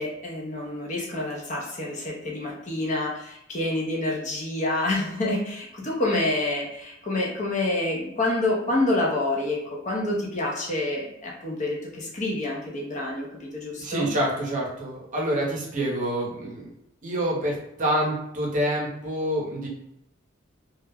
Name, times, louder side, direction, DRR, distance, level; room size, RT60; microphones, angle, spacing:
voice 1, 0.0-14.1, left 2 dB, 35° left, -2 dB, 0.5 m, -28 dB
voice 2, 13.8-16.7 17.0-19.7, right 1 dB, 40° right, -3 dB, 0.7 m, -27 dB
2.2 x 2.0 x 3.3 m, 0.81 s
head